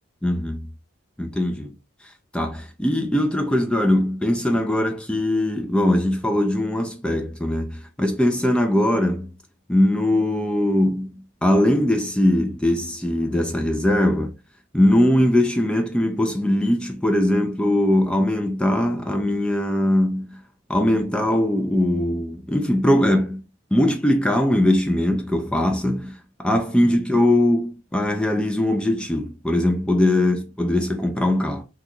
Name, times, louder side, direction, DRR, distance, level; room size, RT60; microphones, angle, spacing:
voice 1, 0.2-0.6 1.2-1.7 2.3-9.3 9.7-14.3 14.7-20.4 20.7-23.4 23.7-31.6, left 1 dB, 5° left, 0.4 m, -21 dB
2.8 x 2.3 x 3.7 m
head